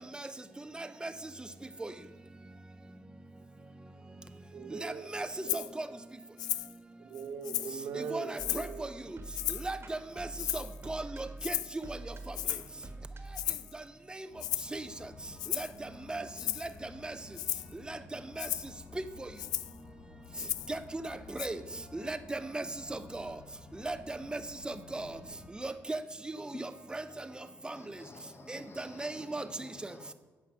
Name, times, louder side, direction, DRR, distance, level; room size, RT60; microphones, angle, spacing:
voice 1, 0.8-1.1 1.8-1.9 4.8-5.3 5.5-5.9 8.1-8.9 9.6-10.3 10.5-11.5 11.9-12.0 14.7-14.8 15.6-15.7 16.1-16.2 17.0-17.1 17.9-18.5 20.7-21.6 21.9-22.6 22.9-23.3 23.8-24.4 24.7-25.1 25.6-26.0 26.6-27.0 27.6-27.8 28.5-29.4, right 2 dB, 15° right, 0.5 m, -37 dB
voice 2, 4.5-5.8 7.0-8.9, right 5 dB, 70° right, 0.9 m, -41 dB
Rattle (instrument), 5.5-5.7 6.4-6.7 7.1-7.8 8.4-8.7 9.3-9.7 10.4-10.8 11.4-11.8 12.3-12.7 13.3-13.7 14.4-14.7 15.4-15.8 16.3-16.7 17.3-17.7 18.4-18.7 19.4-19.8 20.3-20.8 21.4-21.5, left 14 dB, 80° left, 0.3 m, -35 dB
sound 1, 8.4-13.5, right 2 dB, 40° right, 1.3 m, -46 dB
sound 2, 14.3-25.5, left 4 dB, 60° left, 0.9 m, -53 dB
voice 3, 27.5-30.1, left 3 dB, 40° left, 0.9 m, -53 dB
8.5 x 5.8 x 6.1 m
supercardioid pair, 70°, 7 cm